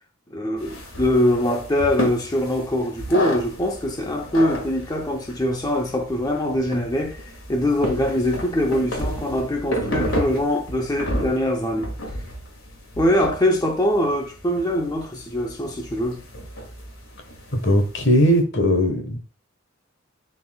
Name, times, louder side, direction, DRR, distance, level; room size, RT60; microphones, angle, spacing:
voice 1, 0.3-11.9 13.0-16.2, left 1 dB, 20° left, 0.7 m, -23 dB
sound 1, 0.6-18.4, equal, 80° left, 2.1 m, -32 dB
voice 2, 17.5-19.2, equal, 60° left, 1.3 m, -19 dB
11.0 x 4.2 x 2.3 m
head